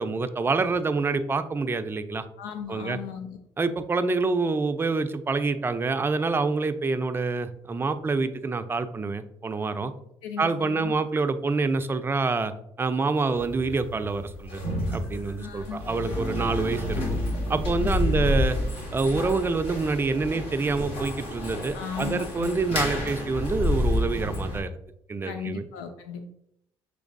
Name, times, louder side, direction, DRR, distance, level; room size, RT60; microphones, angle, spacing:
voice 1, 0.0-2.2 2.7-3.0 3.6-9.9 10.4-12.5 12.8-14.6 14.9-17.0 17.5-18.6 18.9-24.7 25.1-25.6, right 3 dB, 20° right, 9 dB, 0.4 m, -26 dB
voice 2, 2.4-3.4 10.2-11.0 15.4-16.2 17.8-18.2 21.7-22.5 25.3-26.3, left 7 dB, 90° left, 6 dB, 0.4 m, -37 dB
sound 1, 13.3-24.6, left 1 dB, 65° left, 1.8 m, -30 dB
6.1 x 3.2 x 2.5 m, 0.75 s
supercardioid pair, 70°, 10 cm